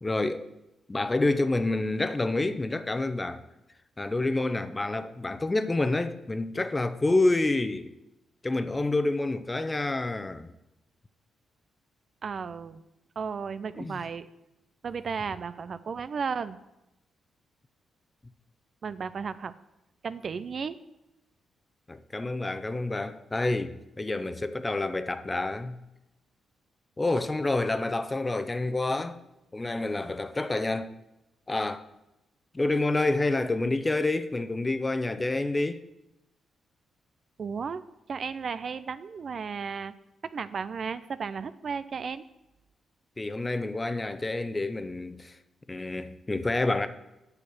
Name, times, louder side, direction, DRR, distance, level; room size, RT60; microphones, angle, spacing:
voice 1, 0.0-0.5 0.9-3.4 4.0-7.9 8.4-10.5 13.8-14.0 21.9-25.8 27.0-29.2 29.5-30.9 31.5-31.8 32.5-35.8 43.2-45.4 45.7-46.9, left 2 dB, 25° left, 0.8 m, -28 dB
voice 2, 12.2-12.8 13.2-14.3 14.8-16.6 18.8-19.5 20.0-20.8 37.4-37.8 38.1-39.9 40.2-42.2, right 6 dB, 55° right, 0.4 m, -34 dB
8.6 x 6.5 x 6.2 m
hypercardioid pair, 40°, 0 cm